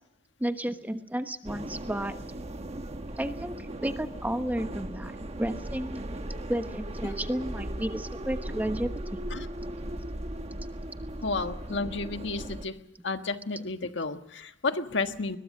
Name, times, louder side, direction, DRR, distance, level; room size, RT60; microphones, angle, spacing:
voice 1, 0.4-2.1 3.2-5.1 5.4-6.0 6.5-9.2, right 1 dB, 10° right, 8 dB, 1.1 m, -32 dB
sound 1, 1.4-12.6, right 1 dB, 35° right, 1.2 m, -37 dB
voice 2, 11.2-12.7 13.0-15.4, left 3 dB, 75° left, 7 dB, 1.5 m, -32 dB
22.0 x 21.0 x 6.6 m, 0.85 s
head